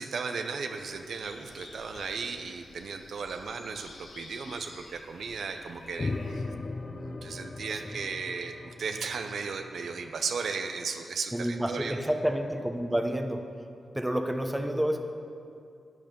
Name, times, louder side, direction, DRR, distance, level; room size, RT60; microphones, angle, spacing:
voice 1, 0.0-6.5 6.9-12.0, right 5 dB, 80° right, 6 dB, 0.6 m, -36 dB
sound 1, 0.8-6.4, left 3 dB, 85° left, 1.2 m, -51 dB
sound 2, 6.0-10.7, left 3 dB, 45° left, 0.7 m, -38 dB
voice 2, 11.3-13.4 13.9-15.0, equal, 10° right, 5 dB, 1.0 m, -29 dB
12.0 x 8.6 x 5.2 m, 2.4 s
cardioid pair, 65°, 0 cm